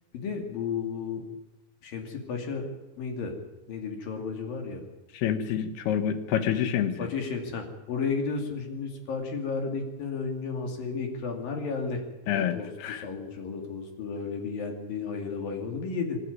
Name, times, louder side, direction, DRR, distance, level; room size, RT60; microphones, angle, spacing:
voice 1, 0.1-1.2 1.8-2.7 3.0-3.3 3.7-4.8 7.0-12.0 12.3-16.2, left 5 dB, 65° left, 3 dB, 4.5 m, -33 dB
voice 2, 5.2-7.0 12.3-13.0, left 9 dB, 85° left, 9 dB, 3.5 m, -27 dB
25.5 x 12.5 x 9.6 m, 1.0 s
omnidirectional pair, 4.4 m